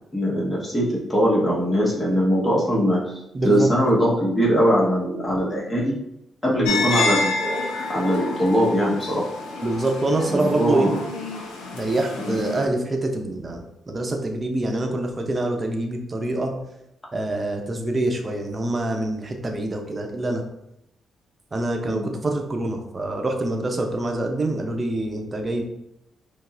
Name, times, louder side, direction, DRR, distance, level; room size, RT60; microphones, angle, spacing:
voice 1, 0.1-6.0 6.4-9.2 10.3-10.9 12.2-12.4 21.9-22.1, equal, 20° left, -4 dB, 1.2 m, -21 dB
voice 2, 3.3-3.7 9.6-11.0 11.7-16.5 17.1-20.4 21.5-25.6, right 2 dB, 35° right, 3 dB, 0.7 m, -25 dB
sound 1, 6.7-12.7, left 3 dB, 80° left, 0.6 m, -28 dB
5.2 x 2.0 x 2.5 m, 0.81 s
hypercardioid pair, 50°, 0 cm